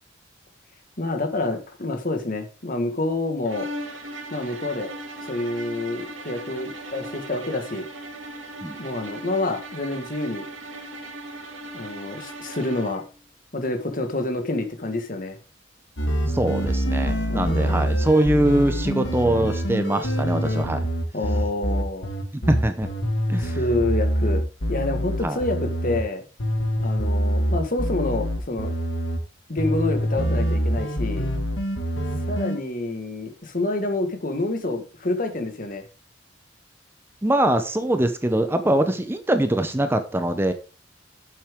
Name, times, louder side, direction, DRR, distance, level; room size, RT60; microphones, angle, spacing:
voice 1, 1.0-3.7 4.3-4.9 5.2-7.9 8.8-10.5 11.7-13.0 13.5-15.4 17.3-17.8 21.1-22.1 23.4-24.4 24.7-26.2 26.8-28.7 29.5-31.3 32.3-35.8, left 2 dB, 45° left, 6 dB, 1.6 m, -28 dB
sound 1, 3.4-13.1, right 1 dB, 85° right, 2.2 m, -37 dB
sound 2, 16.0-26.0 26.4-29.2 29.6-32.6, equal, 70° left, 1.8 m, -25 dB
voice 2, 16.3-20.9 22.5-22.9 23.3-23.6 25.2-25.4 37.2-40.5, right 1 dB, 10° right, 8 dB, 0.7 m, -22 dB
9.6 x 7.4 x 3.6 m, 0.33 s
head